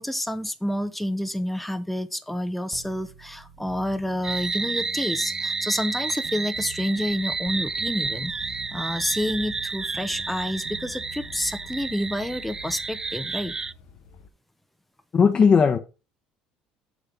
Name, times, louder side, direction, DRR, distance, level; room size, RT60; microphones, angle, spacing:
voice 1, 0.0-8.3 8.7-13.5, left 1 dB, 5° left, 0.7 m, -29 dB
sound 1, 2.7-7.8 8.0-12.8, right 6 dB, 45° right, 1.3 m, -47 dB
sound 2, 4.2-13.7, right 4 dB, 20° right, 0.3 m, -31 dB
sound 3, 7.0-14.3, left 4 dB, 65° left, 0.9 m, -48 dB
voice 2, 15.1-15.8, left 6 dB, 40° left, 0.9 m, -17 dB
6.8 x 3.6 x 5.8 m
supercardioid pair, 80°, 3 cm